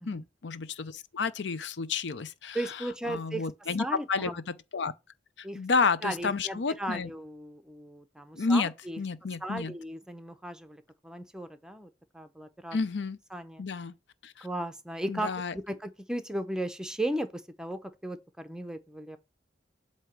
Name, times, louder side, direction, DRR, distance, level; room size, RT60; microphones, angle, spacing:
voice 1, 0.0-4.9 5.4-7.1 8.4-9.7 12.7-13.2 13.6-13.9 14.2-14.5 15.1-15.5, left 4 dB, 90° left, 0.6 m, -31 dB
voice 2, 2.5-3.5 3.8-4.4 5.4-5.6 6.0-9.0 9.4-12.8 13.3-13.6 14.4-19.2, right 1 dB, 5° right, 0.7 m, -36 dB
8.0 x 2.9 x 5.9 m
head